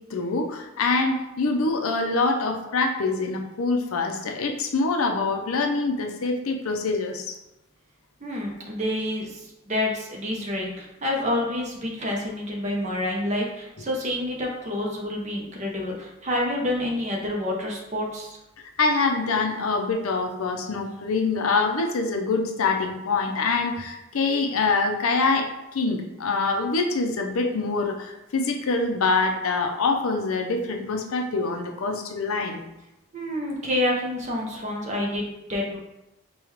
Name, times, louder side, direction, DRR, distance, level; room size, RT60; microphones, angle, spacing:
voice 1, 0.0-7.3 18.8-32.6, left 3 dB, 85° left, 4 dB, 0.6 m, -25 dB
voice 2, 8.2-18.4 33.1-35.8, left 1 dB, 35° right, -1 dB, 0.7 m, -28 dB
4.9 x 2.3 x 3.1 m, 0.92 s
head